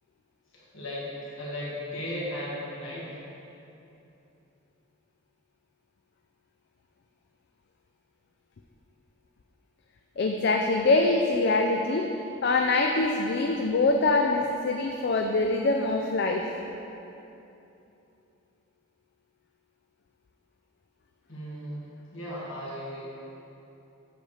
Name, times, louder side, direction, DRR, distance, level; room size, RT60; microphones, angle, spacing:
voice 1, 0.5-1.1 1.4-3.1 21.3-21.8 22.1-23.0, left 1 dB, 75° left, -7 dB, 1.7 m, -36 dB
voice 2, 10.2-12.2 12.4-16.5, left 2 dB, 55° left, 2 dB, 0.4 m, -24 dB
8.2 x 6.9 x 3.3 m, 2.9 s
head